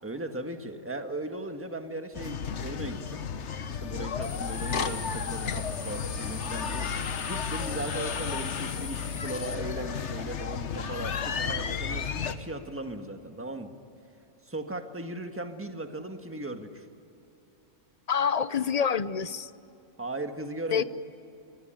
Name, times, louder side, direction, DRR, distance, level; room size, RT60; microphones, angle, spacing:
voice 1, 0.0-3.2 3.8-6.9 7.2-13.7 14.4-16.9 20.0-20.8, right 1 dB, 10° right, 6 dB, 1.6 m, -37 dB
sound 1, 2.1-12.4, left 6 dB, 65° left, 1.4 m, -33 dB
sound 2, 4.2-9.5, left 4 dB, 90° left, 1.9 m, -40 dB
voice 2, 18.1-19.5 20.7-20.8, left 7 dB, 40° left, 15 dB, 0.6 m, -26 dB
25.0 x 23.5 x 9.0 m, 2.9 s
omnidirectional pair, 1.3 m